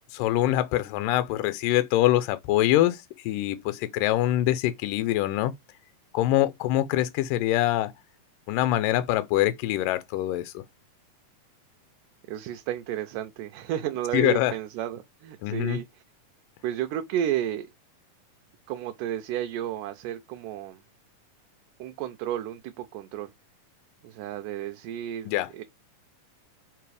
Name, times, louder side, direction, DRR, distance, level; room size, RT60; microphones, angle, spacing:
voice 1, 0.1-5.5 6.1-7.9 8.5-10.6 14.1-14.5 15.4-15.8 25.3-25.5, left 14 dB, 85° left, 2.2 m, -24 dB
voice 2, 12.3-16.0 16.6-17.7 18.7-20.8 21.8-23.3 24.0-25.6, right 11 dB, 80° right, 2.2 m, -32 dB
5.9 x 4.6 x 4.7 m
omnidirectional pair, 3.8 m